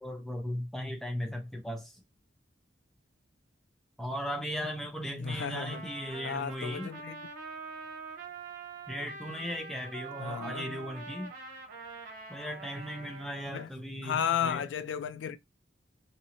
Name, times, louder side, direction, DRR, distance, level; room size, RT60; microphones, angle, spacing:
voice 1, 0.0-2.0 4.0-6.9 8.9-11.3 12.3-14.7, equal, ahead, 0.6 m, -37 dB
voice 2, 5.2-5.8 6.2-7.2 10.2-10.8 13.5-13.7 14.0-15.4, left 8 dB, 75° left, 0.3 m, -33 dB
Trumpet, 5.2-13.7, right 4 dB, 50° right, 1.0 m, -44 dB
2.8 x 2.6 x 2.7 m
head